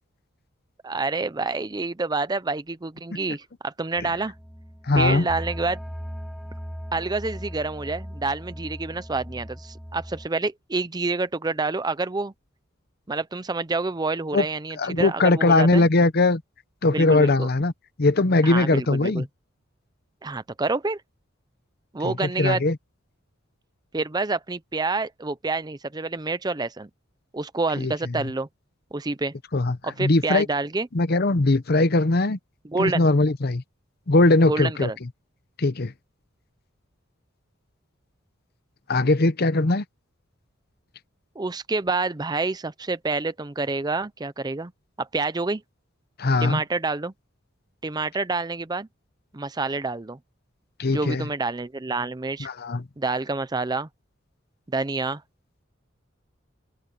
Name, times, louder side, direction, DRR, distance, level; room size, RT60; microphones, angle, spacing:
voice 1, 0.8-4.3 5.0-5.8 6.9-12.3 13.1-15.9 16.9-17.5 18.4-19.3 20.2-21.0 21.9-22.6 23.9-26.9 27.3-28.5 28.9-29.3 29.8-30.9 32.6-33.1 34.5-35.0 41.4-44.7 45.0-45.6 46.4-47.1 47.8-48.9 49.3-50.2 50.9-52.5 53.0-53.9 54.7-55.2, right 3 dB, 20° right, 0.5 m, -28 dB
sound 1, 3.9-10.3, equal, ahead, 5.0 m, -38 dB
voice 2, 4.9-5.3 14.3-14.4 14.8-16.4 16.8-17.7 18.0-19.3 22.0-22.8 27.8-27.9 29.5-30.5 30.9-32.4 32.8-33.6 34.1-34.9 35.6-35.9 38.9-39.8 46.2-46.6 50.8-51.3 52.4-52.8, left 2 dB, 50° left, 0.8 m, -20 dB
open air
head